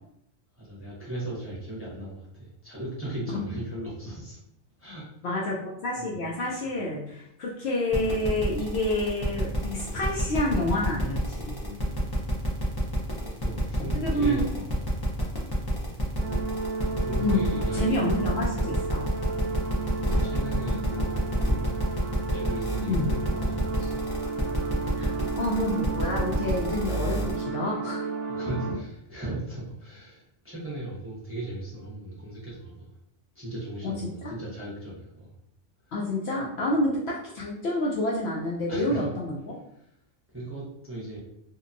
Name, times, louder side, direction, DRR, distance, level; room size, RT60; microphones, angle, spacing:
voice 1, 0.5-4.4 4.8-5.4 6.0-6.2 7.1-7.2 11.5-12.2 13.2-15.0 17.0-18.2 20.0-21.4 22.3-24.0 28.3-32.9 33.3-35.3 35.8-35.9 38.7-39.1 39.7-39.8 40.3-41.2, right 1 dB, 15° right, -8 dB, 0.7 m, -37 dB
voice 2, 5.2-11.6 13.9-14.4 17.2-17.4 17.7-19.1 22.9-23.1 25.0-28.1 33.8-34.3 35.9-39.6, left 1 dB, 65° left, -4 dB, 0.7 m, -28 dB
sound 1, 7.9-27.4, equal, 35° left, 0.4 m, -31 dB
sound 2, 16.2-28.7, right 4 dB, 70° right, 0.9 m, -33 dB
2.8 x 2.2 x 2.5 m, 0.74 s
omnidirectional pair, 1.3 m